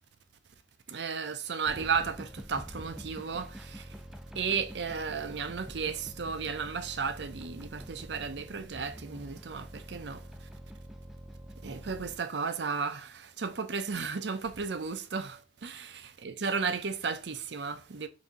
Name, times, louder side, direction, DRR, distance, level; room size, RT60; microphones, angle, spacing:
voice 1, 0.9-3.9 4.4-10.2 11.6-18.1, right 5 dB, 70° right, 0.6 m, -34 dB
sound 1, 1.6-12.2, equal, ahead, 0.4 m, -46 dB
4.1 x 2.7 x 4.7 m
head